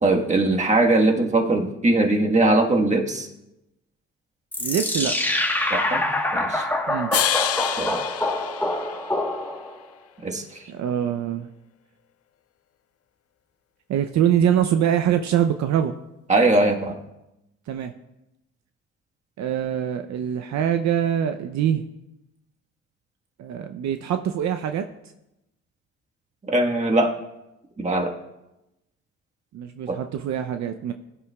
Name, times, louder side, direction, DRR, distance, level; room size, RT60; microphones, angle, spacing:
voice 1, 0.0-3.3 5.7-6.0 6.3-6.7 7.8-8.0 10.2-10.6 16.3-17.0 26.4-27.1 27.8-28.1 29.9-30.0, right 2 dB, 25° right, 1 dB, 1.4 m, -21 dB
sound 1, 4.5-9.8, left 1 dB, 5° left, 1.2 m, -25 dB
voice 2, 4.6-5.1 6.9-7.1 10.7-11.5 13.9-15.9 17.7-17.9 19.4-21.8 23.4-24.9 29.5-30.9, right 9 dB, 65° right, 7 dB, 0.6 m, -24 dB
sound 2, 7.1-9.5, left 11 dB, 50° left, 0.5 m, -27 dB
16.5 x 9.9 x 2.3 m, 0.94 s
cardioid pair, 90°, 30 cm